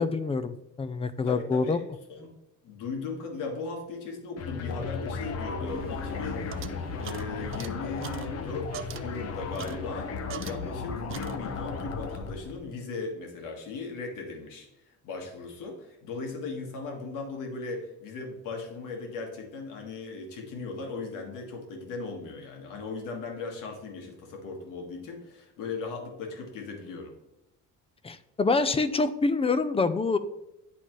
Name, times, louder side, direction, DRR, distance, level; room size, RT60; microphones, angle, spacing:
voice 1, 0.0-1.8 28.0-30.2, left 3 dB, 20° left, 12 dB, 0.4 m, -26 dB
voice 2, 1.2-1.8 2.1-2.3 2.6-10.1 10.4-14.7 15.0-27.1, left 4 dB, 80° left, 2 dB, 1.8 m, -38 dB
sound 1, 4.4-12.6, left 4 dB, 50° left, 0.9 m, -35 dB
sound 2, 5.7-10.8 11.1-11.8, right 8 dB, 40° right, 0.5 m, -43 dB
9.9 x 4.2 x 3.1 m, 0.89 s
cardioid pair, 120°, 32 cm